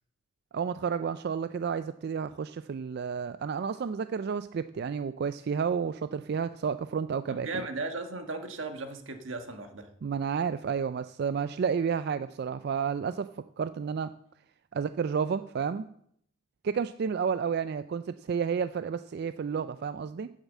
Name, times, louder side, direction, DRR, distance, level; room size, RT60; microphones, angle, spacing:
voice 1, 0.5-7.6 10.0-13.3 13.6-14.1 14.7-15.9 16.6-20.3, right 6 dB, 55° right, 12 dB, 0.3 m, -31 dB
voice 2, 7.3-9.9, right 3 dB, 85° right, 6 dB, 1.4 m, -36 dB
9.1 x 7.3 x 7.3 m, 0.72 s
head